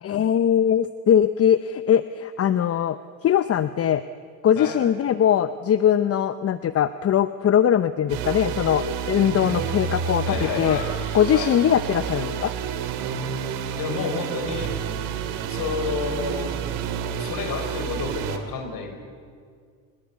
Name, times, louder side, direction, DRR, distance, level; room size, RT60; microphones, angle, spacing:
voice 1, 0.0-4.0 4.4-10.8 11.1-12.5, left 9 dB, 35° left, 13 dB, 0.7 m, -21 dB
sound 1, 8.1-18.4, right 7 dB, 75° right, 2.8 m, -29 dB
Breathing, 8.8-9.3 9.8-12.0, left 6 dB, 85° left, 4.7 m, -44 dB
voice 2, 10.3-10.9 11.3-11.5 13.8-14.8 15.5-16.5 17.2-19.0, left 5 dB, 55° left, 7 dB, 4.3 m, -30 dB
29.5 x 20.0 x 8.3 m, 2.1 s
supercardioid pair, 90°, 42 cm